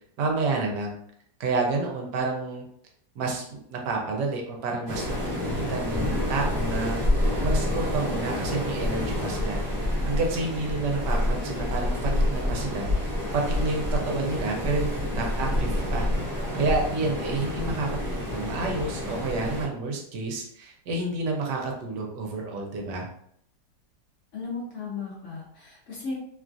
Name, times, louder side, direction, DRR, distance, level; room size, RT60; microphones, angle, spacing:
voice 1, 0.2-0.9 1.4-2.6 3.2-7.0 7.4-12.9 13.3-16.1 16.5-23.1, right 3 dB, 75° right, 1 dB, 1.2 m, -29 dB
Waves surf, 4.9-19.7, left 1 dB, 30° right, 0.7 m, -28 dB
voice 2, 24.3-26.1, left 4 dB, 70° left, -3 dB, 0.7 m, -35 dB
3.1 x 2.3 x 2.5 m, 0.69 s
omnidirectional pair, 2.0 m